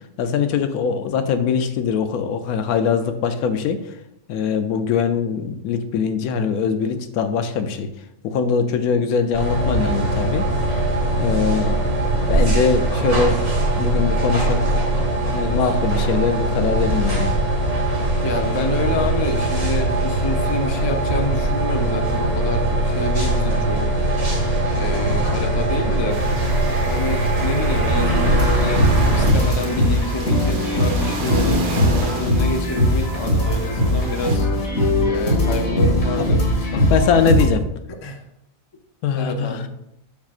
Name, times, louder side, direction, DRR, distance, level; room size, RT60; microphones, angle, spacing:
voice 1, 0.2-3.8 4.3-7.9 8.2-10.4 11.1-11.9 12.2-13.4 13.8-14.6 15.2-17.3 36.2-36.3 36.7-37.6 39.0-39.6, left 6 dB, 90° left, 8 dB, 1.1 m, -22 dB
sound 1, 9.3-29.3, right 1 dB, 55° right, 2.0 m, -21 dB
voice 2, 18.2-24.0 24.7-26.2 26.8-34.5 35.0-36.9 38.0-38.2 39.1-39.6, left 2 dB, 40° left, 4 dB, 0.3 m, -27 dB
sound 2, 26.1-34.4, right 3 dB, 85° right, 1.5 m, -34 dB
sound 3, 27.9-37.4, left 1 dB, 70° left, 2.1 m, -20 dB
7.0 x 6.1 x 2.4 m, 0.83 s
omnidirectional pair, 1.5 m